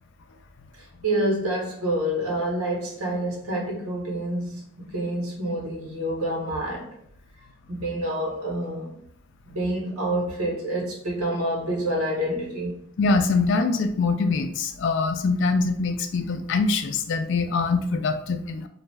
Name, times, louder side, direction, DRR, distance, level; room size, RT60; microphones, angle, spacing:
voice 1, 1.0-6.9 7.7-8.9 9.4-12.8, right 1 dB, 85° right, 1.0 m, -27 dB
voice 2, 13.0-18.7, left 4 dB, 55° left, 0.3 m, -23 dB
2.3 x 2.1 x 3.2 m
head